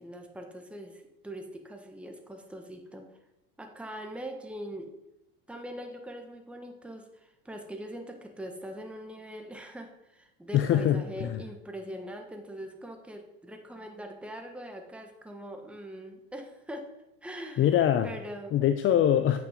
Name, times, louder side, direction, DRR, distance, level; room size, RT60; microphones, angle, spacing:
voice 1, 0.0-3.1 3.6-4.9 5.5-16.9 17.2-17.7 18.0-18.7, equal, 5° right, 3 dB, 1.3 m, -42 dB
voice 2, 10.5-11.4 17.6-18.1 18.5-19.4, left 10 dB, 40° left, 9 dB, 0.6 m, -23 dB
8.1 x 6.0 x 5.2 m, 0.92 s
hypercardioid pair, 80°, 32 cm